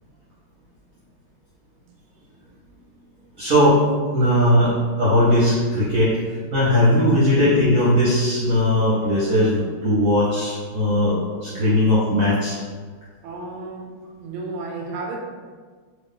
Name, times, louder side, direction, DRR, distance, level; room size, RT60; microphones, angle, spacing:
voice 1, 3.4-3.8 4.1-4.7 5.0-6.2 6.5-12.6, left 1 dB, 60° right, -9 dB, 0.9 m, -18 dB
voice 2, 13.2-13.9 14.2-15.2, right 3 dB, 85° right, 0 dB, 1.5 m, -32 dB
3.0 x 2.6 x 3.7 m, 1.5 s
omnidirectional pair, 2.3 m